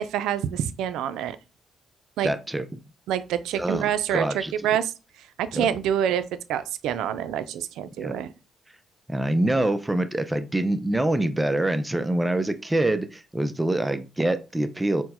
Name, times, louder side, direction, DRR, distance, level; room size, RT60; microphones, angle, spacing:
voice 1, 0.0-1.4 2.2-2.3 3.1-4.9 5.4-6.2 6.5-8.3, right 9 dB, 90° right, 0.4 m, -26 dB
voice 2, 2.2-2.7 3.5-4.5 5.5-5.7 8.0-8.1 9.1-15.0, right 1 dB, 10° right, 0.4 m, -25 dB
4.4 x 2.1 x 4.2 m
cardioid pair, 90°, 0 cm